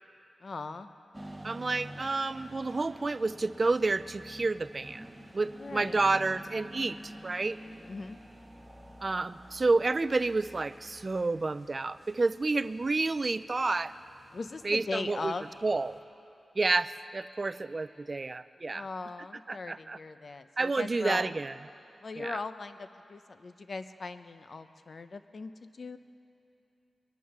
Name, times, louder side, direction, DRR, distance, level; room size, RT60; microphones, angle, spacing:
voice 1, 0.4-0.9 5.5-6.0 7.9-8.2 14.3-15.5 18.7-21.3 22.0-26.0, left 3 dB, 50° left, 10 dB, 0.6 m, -39 dB
sound 1, 1.1-16.0, right 1 dB, 10° right, 1.1 m, -50 dB
voice 2, 1.4-5.0 5.3-7.6 9.0-13.9 14.6-15.3 15.6-16.0 16.6-18.9 19.5-20.0 20.6-21.5 22.2-22.4, right 3 dB, 35° right, 15 dB, 0.3 m, -30 dB
22.5 x 10.0 x 6.0 m, 2.8 s
wide cardioid pair, 140°, 0 cm